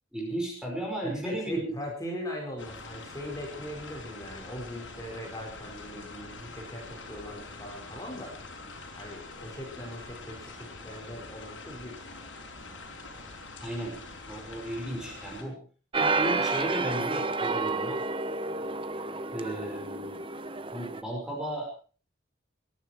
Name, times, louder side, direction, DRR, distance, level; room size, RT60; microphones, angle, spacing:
voice 1, 0.1-1.6 13.6-14.0 14.3-15.6 16.0-18.0 19.3-20.2 20.7-21.7, right 1 dB, 5° right, 0 dB, 5.2 m, -34 dB
voice 2, 1.0-8.3 9.0-12.0, left 1 dB, 20° left, 0 dB, 5.0 m, -40 dB
sound 1, 2.6-15.4, left 3 dB, 80° left, 5.6 m, -45 dB
sound 2, 15.9-21.0, right 3 dB, 25° right, 0.9 m, -30 dB
22.0 x 13.0 x 4.5 m, 0.38 s
head